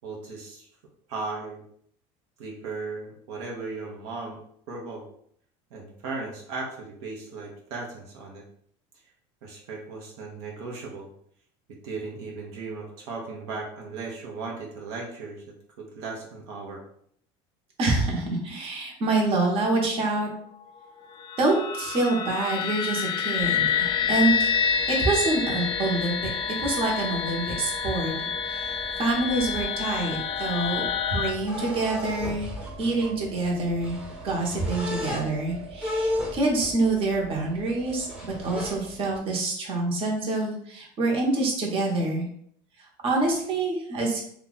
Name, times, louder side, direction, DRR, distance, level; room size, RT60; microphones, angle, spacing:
voice 1, 0.0-0.7 1.1-1.6 2.4-4.4 4.7-5.0 5.7-8.4 9.4-11.1 11.8-15.4 15.8-16.8, right 3 dB, 80° right, -1 dB, 0.9 m, -36 dB
voice 2, 17.8-20.3 21.4-26.3 26.6-30.8 31.1-32.5 32.8-34.0 34.2-42.3 42.8-44.2, right 2 dB, 40° right, -1 dB, 1.0 m, -26 dB
sound 1, 20.8-31.3, left 7 dB, 30° left, 0.4 m, -28 dB
sound 2, 23.4-39.2, equal, 5° right, 0.9 m, -37 dB
2.8 x 2.3 x 3.9 m, 0.64 s
supercardioid pair, 120°, 14 cm